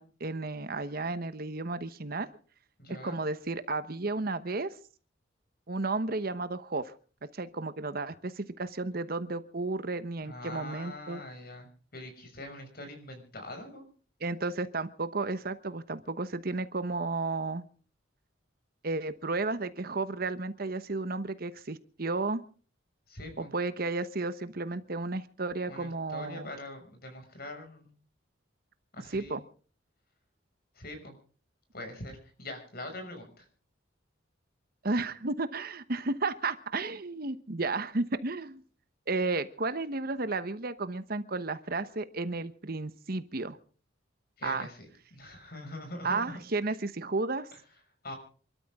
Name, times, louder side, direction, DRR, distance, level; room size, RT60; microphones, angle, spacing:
voice 1, 0.0-2.3 2.9-4.7 5.7-6.9 7.3-11.2 14.2-17.6 18.8-22.4 23.4-26.5 29.1-29.4 34.8-38.6 39.1-43.6 44.4-44.7 46.0-47.5, right 3 dB, 50° right, 12 dB, 1.0 m, -33 dB
voice 2, 2.8-3.2 10.2-11.7 11.9-13.9 23.1-23.5 25.7-27.9 28.9-29.4 30.7-31.1 31.7-33.5 44.4-46.2 48.0-48.1, left 1 dB, 50° left, 6 dB, 6.1 m, -43 dB
28.0 x 13.0 x 3.6 m, 0.41 s
head